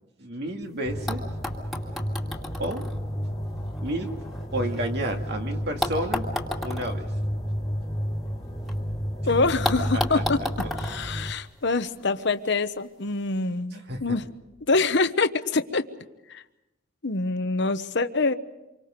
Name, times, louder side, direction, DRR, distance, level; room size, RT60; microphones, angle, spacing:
voice 1, 0.2-1.2 2.6-2.8 3.8-4.1 4.5-6.3 6.6-7.1 9.9-10.2 13.7-14.2, right 1 dB, 50° right, 3 dB, 2.3 m, -31 dB
sound 1, 0.6-0.7 1.1-5.2 5.8-8.8 9.0-9.1 9.6-12.0 13.0-13.1, left 1 dB, ahead, 2.3 m, -34 dB
sound 2, 0.8-11.3, equal, 15° left, 1.5 m, -31 dB
voice 2, 9.3-10.4 10.7-14.2 14.7-15.9 16.3-16.4 17.0-18.4, left 3 dB, 55° left, 10 dB, 1.0 m, -25 dB
28.0 x 24.5 x 5.2 m, 0.96 s
head